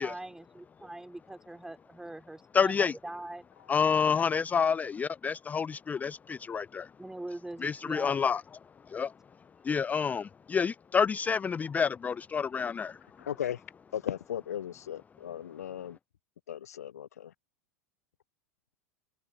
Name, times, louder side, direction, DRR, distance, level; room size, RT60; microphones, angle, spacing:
voice 1, 0.0-3.4 7.0-8.2, right 1 dB, 5° right, 3.4 m, -42 dB
voice 2, 2.5-2.9 3.7-6.9 7.6-8.4 8.9-9.1 9.6-13.0, left 6 dB, 20° left, 0.4 m, -28 dB
voice 3, 13.2-13.6 13.9-16.0 16.5-17.3, left 10 dB, 80° left, 0.4 m, -36 dB
hypercardioid pair, 90°, 8 cm